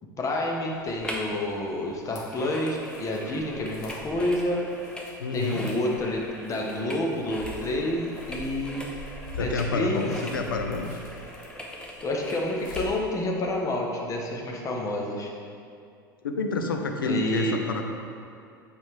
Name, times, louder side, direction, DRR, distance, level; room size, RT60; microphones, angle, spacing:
voice 1, 0.2-4.6 5.3-8.9 9.4-10.0 10.4-10.5 12.0-15.3 17.0-17.6, left 1 dB, 30° left, -1 dB, 1.2 m, -29 dB
sound 1, 0.7-13.0, left 1 dB, 55° left, 1.4 m, -45 dB
sound 2, 1.0-1.4 1.6-12.9 13.4-13.5, equal, 10° left, 1.0 m, -41 dB
voice 2, 5.2-5.6 9.4-10.9 16.2-17.8, left 3 dB, 80° left, 4 dB, 0.6 m, -28 dB
8.1 x 5.0 x 3.6 m, 2.4 s
figure-of-eight pair, 80°, 11 cm